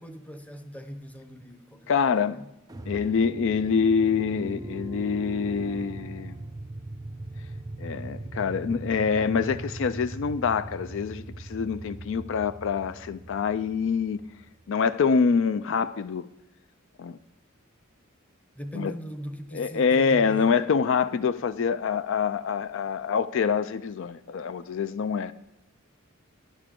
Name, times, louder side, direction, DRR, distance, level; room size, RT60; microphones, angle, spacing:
voice 1, 0.0-2.5 18.6-20.7, equal, 5° left, 0.8 m, -40 dB
voice 2, 1.9-2.4 2.9-6.4 7.8-14.2 14.7-16.3 17.0-17.2 18.7-18.9 19.5-25.3, left 6 dB, 65° left, 0.4 m, -25 dB
sound 1, 2.7-14.9, right 2 dB, 20° right, 0.5 m, -39 dB
11.5 x 11.0 x 3.7 m
head